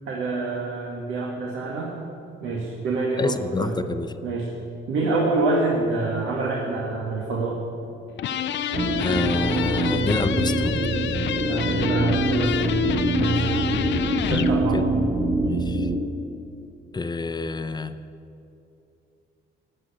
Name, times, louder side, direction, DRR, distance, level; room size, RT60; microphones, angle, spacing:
voice 1, 0.0-2.0 2.4-3.8 4.2-4.5 4.9-7.6 11.5-12.5 13.2-13.7 14.2-14.8, right 3 dB, 85° right, -3 dB, 1.7 m, -26 dB
voice 2, 3.2-4.1 9.0-10.9 14.7-14.8 15.4-15.9 16.9-18.0, left 3 dB, 20° left, 11 dB, 0.7 m, -28 dB
sound 1, 8.2-14.6, left 9 dB, 65° left, 0.6 m, -28 dB
sound 2, 8.7-16.0, right 2 dB, 45° right, 3.4 m, -24 dB
15.5 x 6.2 x 8.7 m, 2.7 s
cardioid pair, 90°, 20 cm